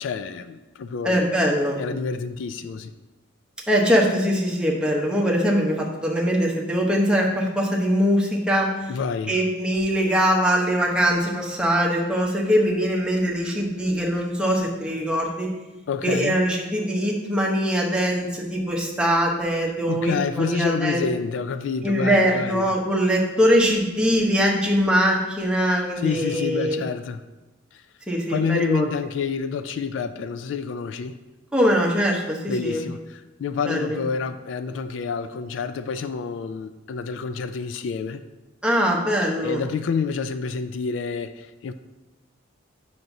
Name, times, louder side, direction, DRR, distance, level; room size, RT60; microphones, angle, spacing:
voice 1, 0.0-1.3 1.8-2.9 8.9-9.4 15.9-16.4 19.9-22.7 26.0-27.2 27.7-27.8 28.3-31.2 32.5-38.2 39.4-41.7, left 5 dB, 75° left, 11 dB, 0.3 m, -28 dB
voice 2, 1.0-1.8 3.7-8.9 9.3-15.5 16.0-21.1 21.8-26.8 28.1-28.9 31.5-32.8 33.7-34.0 38.6-39.6, equal, 5° right, -2 dB, 0.8 m, -22 dB
7.5 x 5.8 x 2.6 m, 1.1 s
head